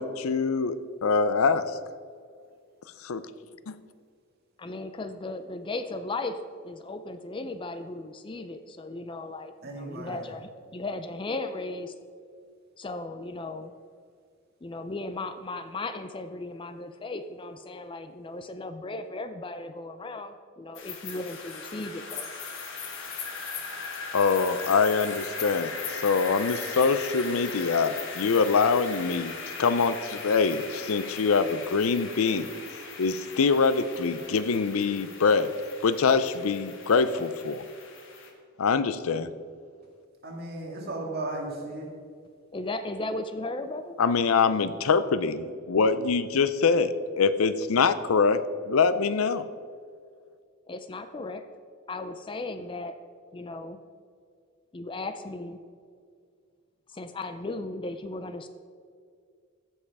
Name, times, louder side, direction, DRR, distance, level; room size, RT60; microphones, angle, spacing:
voice 1, 0.0-1.8 3.0-3.2 3.7-3.8 24.1-32.5 33.0-35.5 35.8-37.6 38.6-39.3 44.0-49.4, left 5 dB, 90° left, 13 dB, 0.5 m, -24 dB
voice 2, 4.6-11.9 12.8-13.7 14.6-22.3 42.5-44.0 50.7-51.5 51.9-53.0 53.3-53.8 54.7-55.6 56.9-58.5, left 2 dB, 25° left, 10 dB, 0.4 m, -36 dB
voice 3, 9.6-10.3 40.2-41.9, right 2 dB, 50° right, 0 dB, 2.0 m, -35 dB
sound 1, 20.7-38.3, left 5 dB, 65° left, 1.5 m, -39 dB
15.5 x 5.5 x 4.8 m, 2.2 s
head